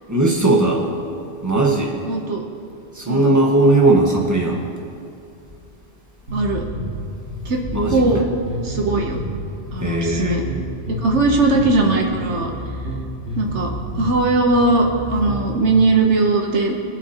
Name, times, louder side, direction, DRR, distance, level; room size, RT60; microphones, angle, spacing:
voice 1, 0.1-0.9 1.4-1.9 2.9-4.7 7.7-8.0 9.8-10.4, right 2 dB, 15° right, -2 dB, 1.5 m, -17 dB
voice 2, 2.1-2.4 3.1-3.3 6.3-6.7 7.4-7.6 7.9-8.3 8.6-9.2 9.7-10.4 11.0-12.5 13.4-16.7, right 3 dB, 80° right, 1 dB, 1.3 m, -19 dB
sound 1, 6.3-15.8, equal, 65° right, 2.6 m, -30 dB
24.0 x 8.3 x 2.9 m, 2.5 s
omnidirectional pair, 1.2 m